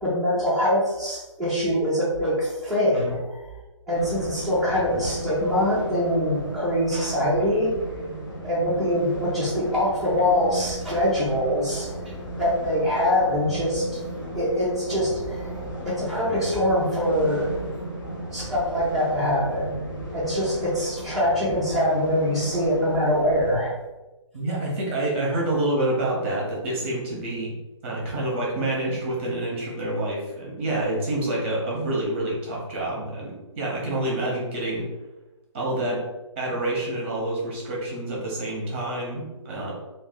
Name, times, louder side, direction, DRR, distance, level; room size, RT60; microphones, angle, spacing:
voice 1, 0.0-3.2 3.9-7.7 8.4-11.9 12.4-13.8 14.3-15.5 15.8-17.5 18.3-19.7 20.1-23.7, left 1 dB, ahead, -10 dB, 0.5 m, -23 dB
sound 1, 3.9-23.6, right 1 dB, 40° left, 0.7 m, -35 dB
voice 2, 24.3-27.5 27.8-34.9 35.5-36.1 36.4-39.7, right 1 dB, 25° right, -3 dB, 0.8 m, -27 dB
2.5 x 2.3 x 3.5 m, 1.1 s
figure-of-eight pair, 140°, 16 cm